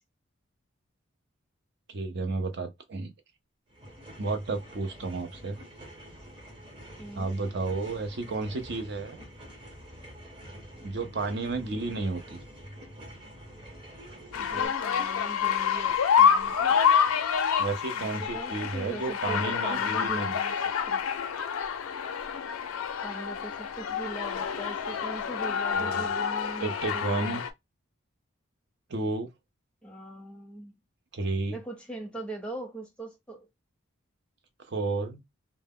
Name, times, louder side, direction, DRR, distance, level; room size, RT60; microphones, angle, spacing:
voice 1, 1.9-3.1 4.2-5.6 7.2-9.2 10.8-12.4 17.6-20.4 25.7-26.1 26.6-27.4 28.9-29.3 31.1-31.6 34.7-35.2, right 3 dB, 55° right, 0.5 m, -32 dB
sound 1, 3.7-14.7, equal, 25° right, 0.9 m, -47 dB
voice 2, 7.0-7.3 14.4-16.8 18.0-21.0 23.0-27.4 29.8-30.7 31.5-33.5, right 2 dB, 5° left, 0.6 m, -41 dB
sound 2, 14.3-27.5, left 7 dB, 85° left, 0.4 m, -27 dB
2.1 x 2.0 x 3.5 m
head